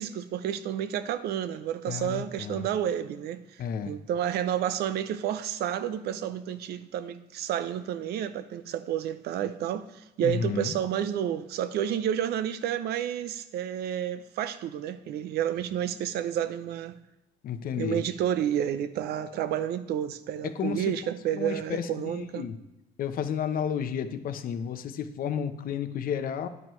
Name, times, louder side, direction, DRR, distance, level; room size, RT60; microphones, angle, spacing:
voice 1, 0.0-17.0 17.8-22.5, right 10 dB, 75° right, 0.6 m, -30 dB
voice 2, 1.9-2.6 3.6-3.9 10.2-10.7 17.4-18.0 20.4-20.8 21.3-22.5 23.0-26.5, left 8 dB, 60° left, 0.8 m, -32 dB
9.9 x 9.2 x 3.2 m
cardioid pair, 110°, 17 cm